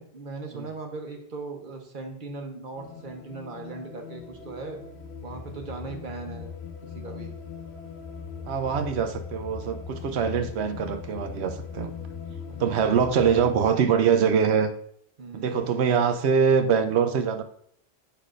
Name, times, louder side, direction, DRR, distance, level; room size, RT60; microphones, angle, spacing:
voice 1, 0.1-4.8 5.2-6.5 6.8-7.3 12.5-13.1 15.2-15.6, right 3 dB, 50° right, 3 dB, 1.1 m, -39 dB
sound 1, 2.8-13.7, left 6 dB, 80° left, 1.0 m, -39 dB
voice 2, 8.5-11.9 12.6-14.7 15.3-17.4, right 7 dB, 80° right, 9 dB, 0.9 m, -23 dB
8.3 x 5.6 x 2.5 m, 0.67 s
omnidirectional pair, 1.1 m